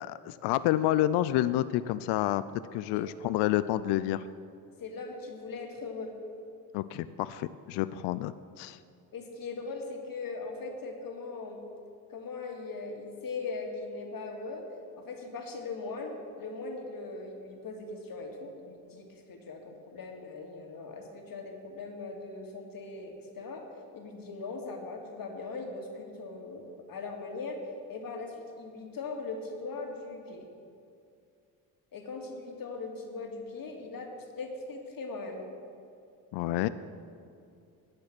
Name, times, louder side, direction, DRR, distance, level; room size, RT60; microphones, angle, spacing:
voice 1, 0.0-2.4 2.7-4.3 6.7-8.8 36.3-36.7, left 14 dB, 65° left, 15 dB, 0.5 m, -29 dB
voice 2, 4.8-6.1 9.1-11.6 12.1-14.6 15.0-23.6 23.9-27.6 27.9-30.5 31.9-34.1 34.4-35.5 36.6-36.7, left 3 dB, 50° left, 2 dB, 2.3 m, -40 dB
10.5 x 8.5 x 6.0 m, 2.4 s
hypercardioid pair, 60°, 45 cm